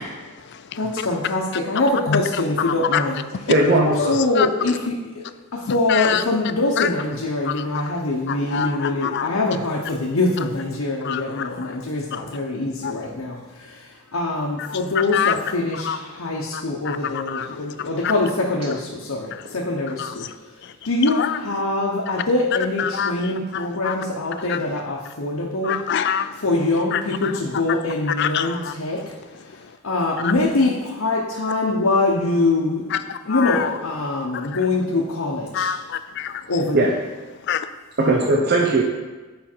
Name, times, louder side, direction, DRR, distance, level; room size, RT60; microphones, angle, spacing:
voice 1, 0.7-3.5 4.1-5.2 5.5-25.8 26.3-29.2 29.8-32.8 33.2-35.7 36.5-36.9 38.0-38.3, left 2 dB, 80° left, -3 dB, 0.9 m, -24 dB
voice 2, 3.5-4.1 36.7-36.9 38.0-38.8, right 2 dB, 50° right, -1 dB, 0.6 m, -18 dB
voice 3, 5.9-6.2 6.8-6.9 8.3-9.3 11.1-11.2 12.8-12.9 15.1-15.3 15.9-16.0 16.9-17.0 17.3-17.5 20.0-20.1 22.9-23.1 23.8-23.9 25.6-26.3 26.9-27.0 28.2-28.7 33.3-33.7 35.5-36.3 37.5-37.6, left 8 dB, 55° left, 12 dB, 0.4 m, -24 dB
7.3 x 5.1 x 4.5 m, 1.2 s
head